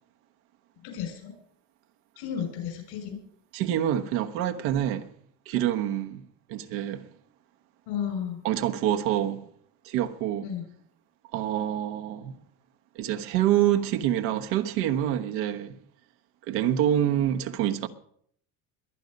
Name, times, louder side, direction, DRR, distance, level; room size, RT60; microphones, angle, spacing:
voice 1, 0.8-1.3 2.2-3.2 7.9-8.4 10.4-10.7, left 8 dB, 80° left, 6.2 m, -33 dB
voice 2, 3.5-5.1 5.5-6.2 6.5-7.1 8.4-9.5 9.8-10.5 11.3-12.4 12.9-15.8 16.5-17.9, right 11 dB, 90° right, 1.3 m, -26 dB
22.0 x 9.3 x 5.3 m
supercardioid pair, 100°, 40 cm